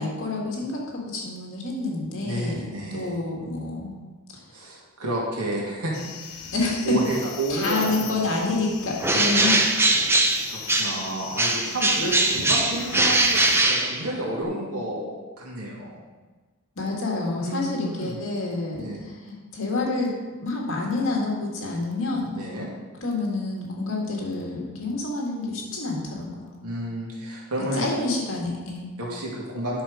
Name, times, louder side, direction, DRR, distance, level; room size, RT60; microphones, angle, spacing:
voice 1, 0.0-3.9 4.3-4.5 6.5-7.0 7.5-9.6 16.8-20.1 20.4-22.4 23.0-26.6 27.7-28.9, left 3 dB, 60° left, -2 dB, 2.2 m, -28 dB
voice 2, 2.2-3.2 4.5-6.5 6.8-8.5 9.1-9.6 10.0-16.0 17.4-18.2 18.8-19.0 22.3-22.7 26.6-27.9 29.0-29.8, right 1 dB, 85° right, -3 dB, 2.4 m, -31 dB
sound 1, 5.9-13.6, left 7 dB, 80° left, 0.8 m, -39 dB
Bird, 9.0-11.1 11.4-14.4, right 2 dB, 10° right, 0.7 m, -21 dB
10.5 x 6.0 x 5.1 m, 1.3 s
head